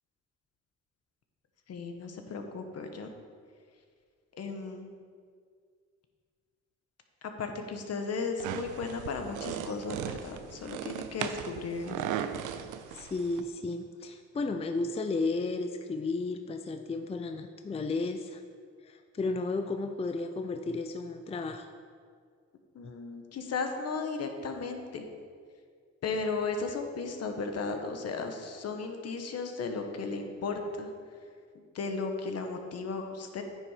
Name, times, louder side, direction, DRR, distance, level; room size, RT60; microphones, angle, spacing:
voice 1, 1.7-3.1 4.3-4.9 7.4-12.0 22.7-25.1 26.0-30.9 31.7-33.4, left 4 dB, 55° left, 5 dB, 1.2 m, -35 dB
sound 1, 8.4-13.4, right 9 dB, 90° right, 0.6 m, -37 dB
voice 2, 12.9-18.4 18.8-21.7, left 3 dB, 20° left, 7 dB, 0.5 m, -33 dB
9.6 x 7.1 x 5.0 m, 2.1 s
cardioid pair, 90°, 30 cm